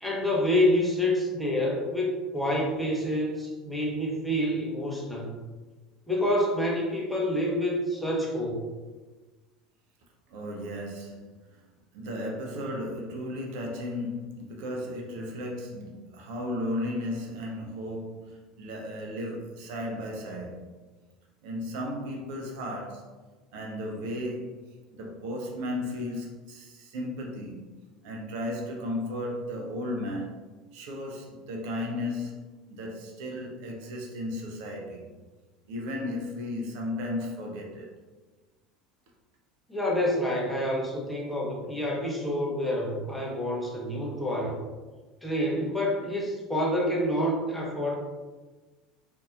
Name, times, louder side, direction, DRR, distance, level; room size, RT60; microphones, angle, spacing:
voice 1, 0.0-5.4 6.1-8.7 39.7-44.6 45.2-47.9, left 1 dB, ahead, -3 dB, 0.9 m, -27 dB
voice 2, 10.3-11.3 11.9-20.7 21.4-23.1 23.5-24.6 24.9-27.7 28.0-30.4 30.7-32.4 32.7-35.1 35.7-37.9, left 1 dB, 60° right, 0 dB, 0.6 m, -35 dB
3.9 x 2.6 x 2.5 m, 1.3 s
hypercardioid pair, 75°, 4 cm